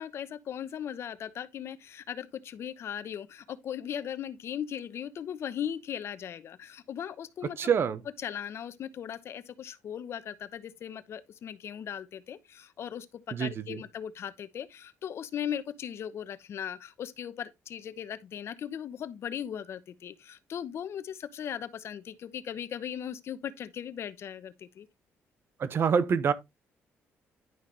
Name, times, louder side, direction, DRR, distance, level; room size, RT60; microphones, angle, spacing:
voice 1, 0.0-7.7 8.2-24.9, left 9 dB, 60° left, 0.9 m, -38 dB
voice 2, 7.6-8.0 13.3-13.8 25.6-26.3, right 6 dB, 50° right, 1.0 m, -26 dB
11.0 x 5.7 x 3.2 m
cardioid pair, 100°, 5 cm